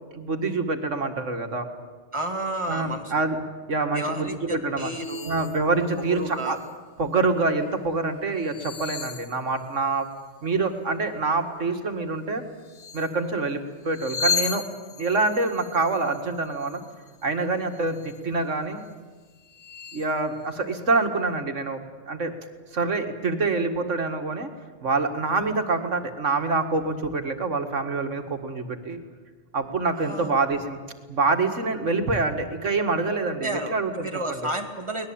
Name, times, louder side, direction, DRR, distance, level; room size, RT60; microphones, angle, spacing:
voice 1, 0.1-1.7 2.7-3.4 3.7-4.9 5.2-6.6 7.0-10.1 10.4-12.4 12.9-14.6 15.0-16.8 17.2-18.8 19.9-21.8 22.1-22.3 22.7-24.5 24.8-29.0 29.5-30.8 31.1-34.4, right 3 dB, 80° right, 6 dB, 2.4 m, -26 dB
voice 2, 2.1-3.1 3.9-5.5 6.0-6.6 30.0-30.3 33.4-35.1, right 1 dB, 25° right, 4 dB, 2.5 m, -31 dB
sound 1, 4.9-5.6 6.1-6.7 8.4-10.0 12.6-13.2 13.8-17.3 17.7-18.2 18.8-18.9 19.4-20.1, left 7 dB, 75° left, 1.8 m, -34 dB
23.5 x 19.5 x 8.9 m, 1.4 s
omnidirectional pair, 1.3 m